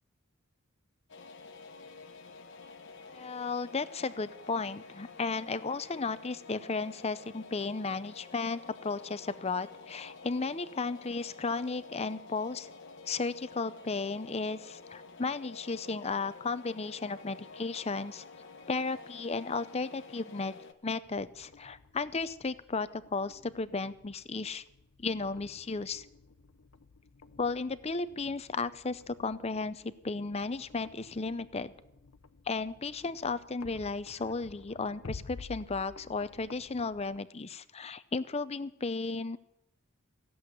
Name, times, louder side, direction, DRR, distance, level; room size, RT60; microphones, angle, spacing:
sound 1, 1.1-20.7, left 4 dB, 60° left, 1.2 m, -50 dB
voice 1, 3.1-12.7 13.1-18.2 18.7-24.6 25.0-26.1 27.4-31.7 32.5-39.4, left 4 dB, 30° left, 14 dB, 0.6 m, -34 dB
sound 2, 21.0-37.2, left 3 dB, 75° left, 0.8 m, -52 dB
16.0 x 7.9 x 9.9 m, 0.83 s
head